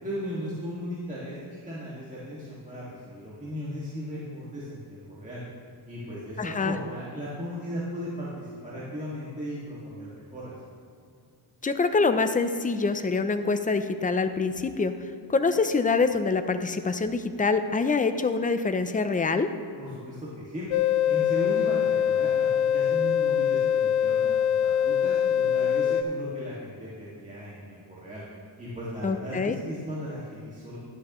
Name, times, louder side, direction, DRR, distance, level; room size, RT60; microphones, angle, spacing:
voice 1, 0.0-5.4 5.9-10.5 19.7-20.7 21.1-28.2 28.6-30.8, equal, 15° right, -8 dB, 2.0 m, -37 dB
voice 2, 6.4-6.8 11.6-14.9 15.3-19.5 29.0-29.6, left 4 dB, 15° left, 8 dB, 0.5 m, -25 dB
sound 1, 20.7-26.0, left 9 dB, 85° left, 0.5 m, -23 dB
11.5 x 9.9 x 3.1 m, 2.3 s
wide cardioid pair, 105°, 49 cm